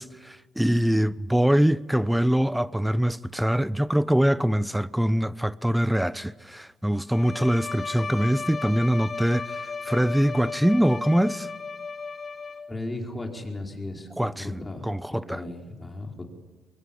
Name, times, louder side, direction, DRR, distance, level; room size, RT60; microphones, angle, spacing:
voice 1, 0.0-11.5 14.2-15.4, equal, 5° right, 0.8 m, -24 dB
Bowed string instrument, 7.1-12.9, left 4 dB, 35° left, 1.2 m, -35 dB
voice 2, 12.7-16.3, left 2 dB, 20° left, 4.8 m, -36 dB
23.5 x 23.0 x 8.7 m
cardioid pair, 80°, 0 cm